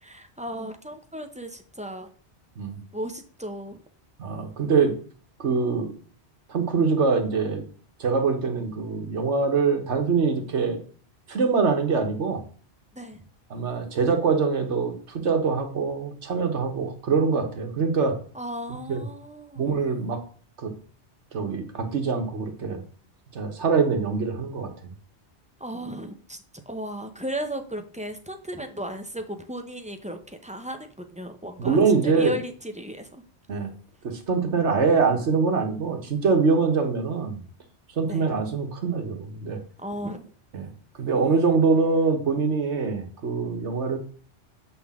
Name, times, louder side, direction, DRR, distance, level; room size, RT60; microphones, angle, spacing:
voice 1, 0.0-2.1 2.9-3.8 12.9-13.2 18.3-19.8 25.6-26.4 26.7-33.1 38.1-38.2 39.8-40.3, equal, 5° right, 0.7 m, -35 dB
voice 2, 4.2-4.9 5.4-5.9 6.5-7.6 8.0-10.8 11.3-12.4 13.5-18.2 18.7-19.1 19.6-20.2 20.6-20.7 21.3-22.8 23.3-24.7 31.6-32.3 33.5-33.7 34.0-37.4 38.0-39.6 40.5-40.7 41.0-44.0, right 4 dB, 80° right, 1.5 m, -24 dB
7.9 x 5.8 x 3.6 m
omnidirectional pair, 1.2 m